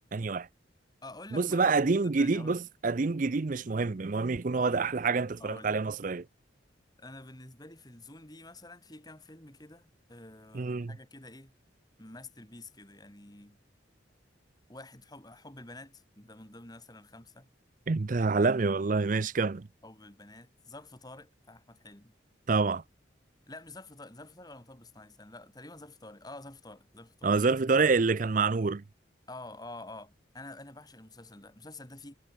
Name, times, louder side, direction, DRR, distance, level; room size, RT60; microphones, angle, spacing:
voice 1, 0.1-0.5 1.3-6.2 10.5-10.9 17.9-19.7 22.5-22.8 27.2-28.8, right 4 dB, 45° right, 0.5 m, -27 dB
voice 2, 1.0-2.7 4.5-4.9 5.4-5.8 7.0-11.5 12.0-13.6 14.7-17.5 19.8-22.1 23.5-27.4 29.3-32.1, left 2 dB, 20° left, 3.6 m, -48 dB
head